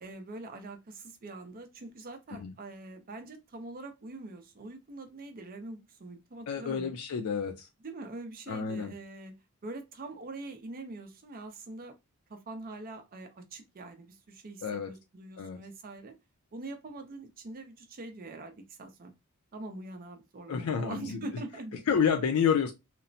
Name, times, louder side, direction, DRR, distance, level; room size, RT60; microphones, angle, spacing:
voice 1, 0.0-7.0 7.8-9.3 9.6-11.9 12.3-16.1 16.5-19.1 19.5-21.8, right 2 dB, 40° right, 0.5 m, -44 dB
voice 2, 6.5-7.7 8.5-8.9 14.6-14.9 15.4-15.6 20.5-21.3 21.9-22.7, left 7 dB, 80° left, 0.4 m, -29 dB
2.9 x 2.0 x 2.6 m
head